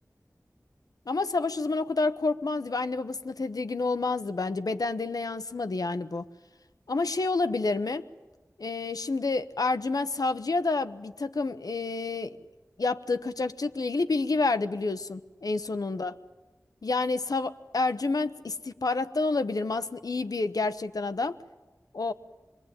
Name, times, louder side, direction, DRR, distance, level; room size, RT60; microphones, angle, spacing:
voice 1, 1.1-6.2 6.9-8.0 8.6-12.4 12.8-16.1 16.8-21.4 21.9-22.1, left 3 dB, 85° left, 10 dB, 0.9 m, -29 dB
26.5 x 21.5 x 8.9 m, 1.2 s
wide cardioid pair, 50°, 6 cm